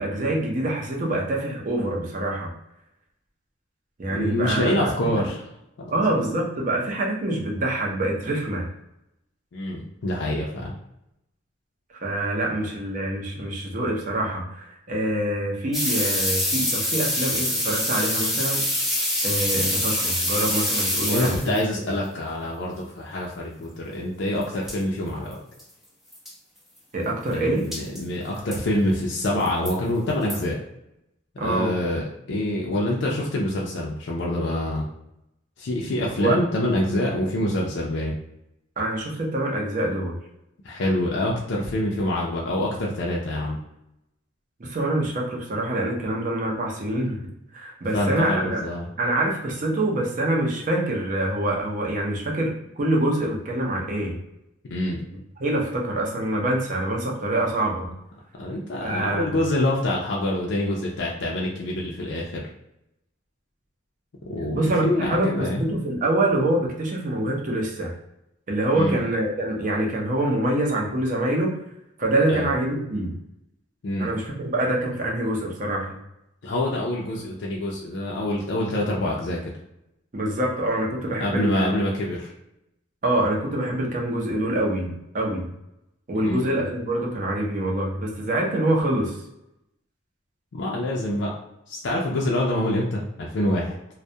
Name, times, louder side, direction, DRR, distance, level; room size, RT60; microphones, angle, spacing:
voice 1, 0.0-2.5 4.0-5.2 5.9-8.7 12.0-18.7 19.2-21.5 21.9-22.0 26.9-27.7 31.4-31.8 36.2-36.4 38.8-40.2 44.6-47.2 47.5-48.6 49.0-54.2 55.4-57.9 58.8-59.4 64.5-67.9 68.5-71.5 72.0-73.1 74.0-75.9 80.1-81.7 83.0-85.5 86.1-89.1, right 1 dB, 45° right, -1 dB, 0.6 m, -25 dB
voice 2, 4.1-5.5 5.8-6.0 9.5-10.7 13.4-13.5 21.0-25.4 27.3-30.6 31.4-32.0 32.3-34.9 35.6-38.1 40.6-43.6 47.9-48.9 54.6-55.0 58.4-62.4 64.3-65.6 68.7-69.0 72.3-72.5 73.8-74.1 76.4-79.5 81.2-82.3 86.2-86.4 90.5-91.3 91.7-93.8, left 1 dB, 65° left, -3 dB, 0.4 m, -26 dB
sound 1, 15.7-21.6 24.4-24.5 24.7-24.8 25.3-25.4 25.6-25.7 26.1-26.3 27.7-28.0 28.5-28.6 29.2-29.7 30.3-30.4, left 1 dB, ahead, 0.5 m, -25 dB
2.3 x 2.1 x 2.7 m, 0.85 s
head